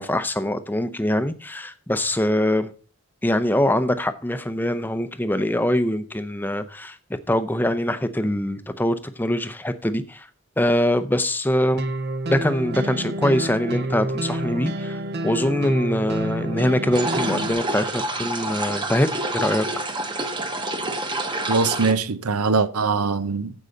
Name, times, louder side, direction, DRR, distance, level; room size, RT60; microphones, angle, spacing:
voice 1, 0.0-2.7 3.2-7.0 7.3-10.3 10.6-11.8 12.3-19.7, left 1 dB, 10° left, 0.6 m, -23 dB
sound 1, 11.8-17.5, right 1 dB, 45° right, 0.7 m, -28 dB
sound 2, 16.9-21.9, right 1 dB, 20° right, 1.0 m, -28 dB
voice 2, 21.5-23.5, right 4 dB, 85° right, 0.8 m, -22 dB
15.0 x 5.5 x 3.8 m
head